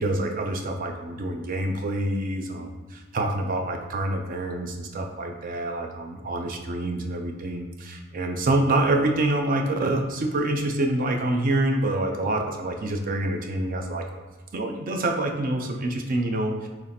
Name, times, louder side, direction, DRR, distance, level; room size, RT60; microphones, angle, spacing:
voice 1, 0.0-14.0 14.5-16.7, right 1 dB, 40° right, 4 dB, 0.4 m, -26 dB
3.1 x 2.8 x 4.0 m, 1.3 s
head